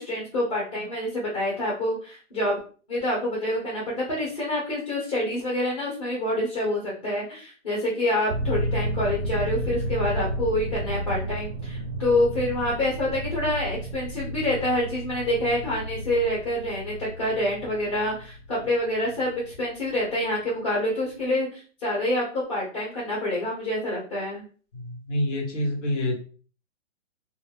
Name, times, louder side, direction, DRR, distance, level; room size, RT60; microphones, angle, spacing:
voice 1, 0.0-2.6 2.9-24.4, left 1 dB, 30° left, -4 dB, 0.9 m, -27 dB
sound 1, 8.3-19.6 19.9-20.0, equal, 45° right, 0.4 m, -32 dB
voice 2, 24.7-26.2, left 1 dB, 80° left, 0 dB, 1.3 m, -27 dB
2.3 x 2.1 x 3.3 m, 0.39 s
hypercardioid pair, 165°, 36 cm